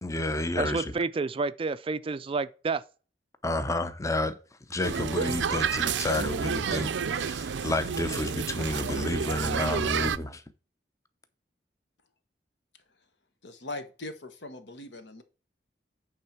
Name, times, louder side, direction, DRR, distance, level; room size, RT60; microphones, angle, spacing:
voice 1, 0.0-0.9 3.4-4.4 4.7-10.4, left 1 dB, 20° left, 0.7 m, -30 dB
voice 2, 0.6-2.8, right 4 dB, 30° right, 0.4 m, -29 dB
sound 1, 4.8-10.2, right 6 dB, 85° right, 0.5 m, -30 dB
voice 3, 13.4-15.2, left 2 dB, 70° left, 1.2 m, -40 dB
8.8 x 3.7 x 5.8 m
head